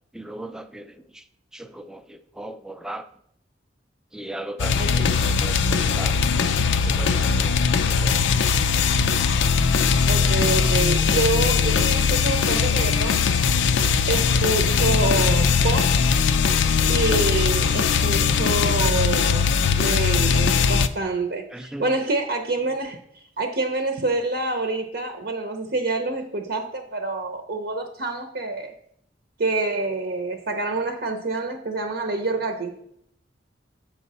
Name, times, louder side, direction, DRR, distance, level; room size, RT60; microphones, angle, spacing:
voice 1, 0.1-1.2 1.5-3.1 4.1-6.3 6.7-8.6 21.5-21.9, right 1 dB, 5° right, 0.4 m, -38 dB
sound 1, 4.6-20.9, left 5 dB, 75° left, 0.4 m, -20 dB
voice 2, 4.8-5.1 10.0-13.2 14.1-16.0 16.9-23.0 23.4-28.7 29.4-32.7, right 3 dB, 60° right, 0.7 m, -27 dB
7.4 x 5.4 x 4.1 m
head